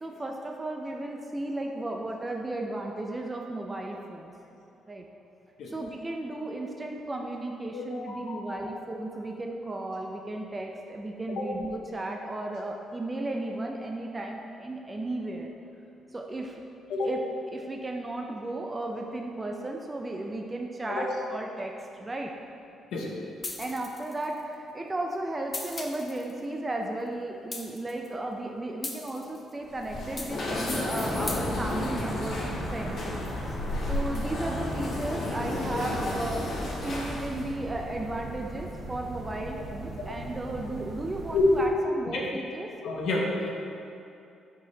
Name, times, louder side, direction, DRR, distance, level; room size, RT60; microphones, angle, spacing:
voice 1, 0.0-4.3 4.9-5.1 5.7-15.5 16.1-16.6 17.0-17.2 17.5-22.3 23.6-33.0 33.4-36.6 36.8-42.7, right 2 dB, 20° right, 1 dB, 0.4 m, -34 dB
voice 2, 7.7-8.4 11.3-11.4 16.9-17.1 20.9-21.0 22.9-23.1 41.3-41.4 42.1-42.2 42.8-43.5, left 3 dB, 75° left, -2 dB, 0.9 m, -30 dB
sound 1, 23.4-24.4 25.5-26.3 27.5-28.1 28.8-29.5 30.2-30.6 31.3-31.4, left 2 dB, 25° left, 0.6 m, -38 dB
sound 2, 29.7-37.5, left 2 dB, 55° left, 1.4 m, -32 dB
sound 3, 31.1-41.7, right 2 dB, 60° right, 0.7 m, -40 dB
6.7 x 5.0 x 2.8 m, 2.7 s
cardioid pair, 90°, 0 cm